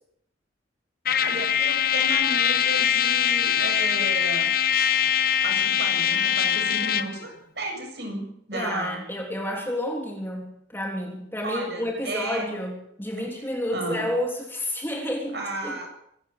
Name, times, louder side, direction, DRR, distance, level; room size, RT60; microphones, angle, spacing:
Trumpet, 1.0-7.2, left 9 dB, 50° left, 1.0 m, -22 dB
voice 1, 1.2-4.5 5.4-9.0 11.4-12.5 13.2-13.4 13.7-14.1 15.0-15.9, right 2 dB, 60° right, 4 dB, 7.4 m, -33 dB
voice 2, 8.5-15.4 15.6-15.8, left 1 dB, 10° left, 0 dB, 3.4 m, -30 dB
25.5 x 13.5 x 8.8 m, 0.73 s
head